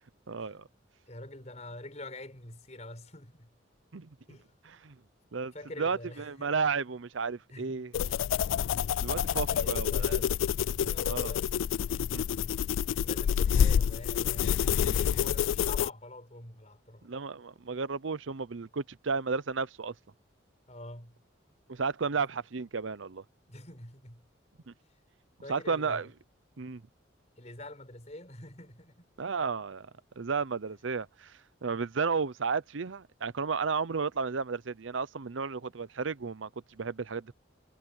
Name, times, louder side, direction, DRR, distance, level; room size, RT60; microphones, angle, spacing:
voice 1, 0.3-0.7 3.9-4.1 4.6-4.9 5.3-5.5 5.8-8.1 9.0-10.2 11.1-11.4 17.0-19.9 21.7-23.2 24.7-24.8 25.5-26.1 26.6-26.8 29.2-29.9 30.2-37.3, right 5 dB, 75° right, 0.7 m, -33 dB
voice 2, 1.1-3.5 4.3-4.5 5.5-6.5 7.5-7.9 9.1-10.4 10.7-11.6 12.0-12.6 13.0-17.1 20.7-21.2 23.5-24.3 25.4-26.1 27.4-29.1, left 1 dB, 35° left, 5.4 m, -46 dB
sound 1, 7.9-15.9, left 8 dB, 80° left, 0.3 m, -28 dB
head